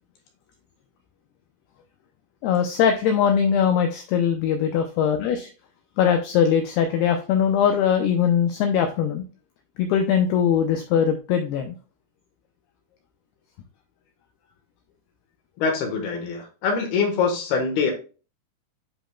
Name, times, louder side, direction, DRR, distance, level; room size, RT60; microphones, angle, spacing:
voice 1, 2.4-5.5 6.0-9.2 9.8-11.7, left 8 dB, 85° left, 5 dB, 2.2 m, -21 dB
voice 2, 15.6-17.9, left 5 dB, 70° left, 3 dB, 2.8 m, -24 dB
10.0 x 5.0 x 2.2 m, 0.35 s
omnidirectional pair, 5.3 m